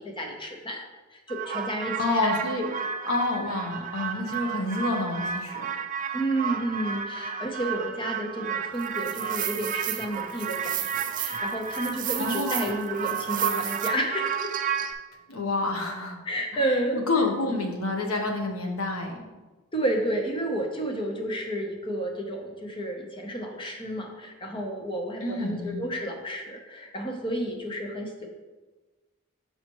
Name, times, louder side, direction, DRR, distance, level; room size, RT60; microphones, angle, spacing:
voice 1, 0.0-2.3 6.1-14.5 16.2-17.0 19.7-28.3, right 1 dB, 25° left, 2 dB, 0.8 m, -31 dB
sound 1, 1.3-14.9, right 8 dB, 40° right, 0.4 m, -31 dB
voice 2, 2.0-2.7 3.0-5.7 12.2-12.8 15.3-16.2 16.9-19.2 25.2-25.8, left 2 dB, 85° left, 2 dB, 0.9 m, -28 dB
5.7 x 5.4 x 3.0 m, 1.2 s
head